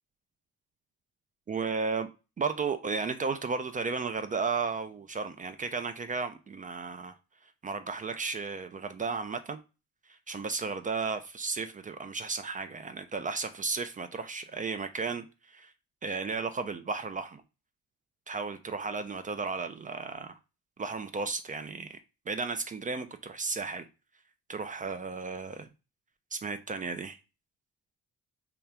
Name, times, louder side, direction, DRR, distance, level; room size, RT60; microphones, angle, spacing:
voice 1, 1.5-2.1 2.4-7.1 7.6-9.6 10.3-15.7 16.0-17.4 18.3-20.4 20.8-22.0 22.3-23.9 24.5-25.7 26.3-27.2, right 4 dB, 25° right, 0.4 m, -34 dB
2.8 x 2.4 x 3.4 m
cardioid pair, 90°, 30 cm